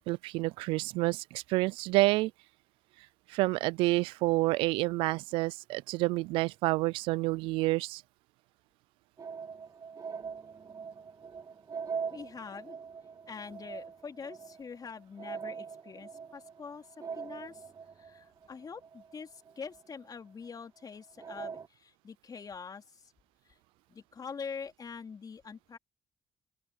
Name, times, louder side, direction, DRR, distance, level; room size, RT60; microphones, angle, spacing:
voice 1, 0.1-2.3 3.3-8.0, right 21 dB, 85° right, 0.4 m, -28 dB
sound 1, 9.2-20.0 20.5-20.6 21.2-21.7, right 6 dB, 40° right, 0.7 m, -42 dB
voice 2, 12.1-12.8 13.3-16.8 17.2-17.6 18.0-23.0 23.9-25.8, left 5 dB, 45° left, 3.8 m, -44 dB
open air
supercardioid pair, 55°, 9 cm